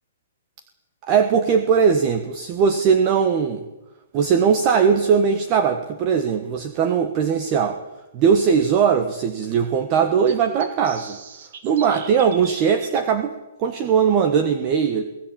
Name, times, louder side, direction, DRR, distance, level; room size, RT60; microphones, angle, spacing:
voice 1, 1.0-3.7 4.1-7.8 8.1-11.2 11.6-15.0, right 6 dB, 20° right, 8 dB, 1.3 m, -19 dB
sound 1, 7.4-7.5 7.7-7.8 10.3-13.0, right 6 dB, 45° right, 3.3 m, -40 dB
25.0 x 17.0 x 8.8 m, 0.98 s
hypercardioid pair, 175°, 0 cm